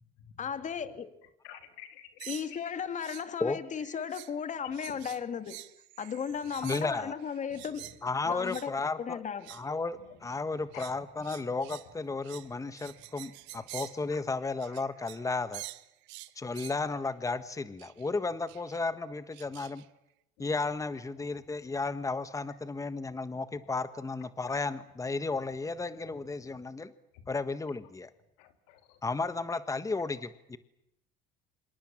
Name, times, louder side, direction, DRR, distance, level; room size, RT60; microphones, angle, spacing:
voice 1, 0.4-1.1 2.3-5.6 6.0-7.9 8.3-9.5, left 7 dB, 40° left, 2.3 m, -35 dB
voice 2, 1.4-2.3 7.5-7.7 10.0-10.1 10.7-10.8 13.5-13.6 28.4-29.0, left 11 dB, 85° left, 3.1 m, -51 dB
sound 1, 2.2-3.3 3.6-4.4 4.7-8.0 8.4-8.7 9.3-9.7 10.3-15.3 15.5-16.8 17.8-18.1 18.5-18.8 19.3-19.9, right 20 dB, 80° right, 1.2 m, -48 dB
voice 3, 6.6-7.1 8.0-9.2 9.5-15.6 16.4-19.8 20.4-26.9 27.3-28.1 29.0-30.6, left 3 dB, 15° left, 1.4 m, -33 dB
27.5 x 26.5 x 7.5 m
supercardioid pair, 85°, 19 cm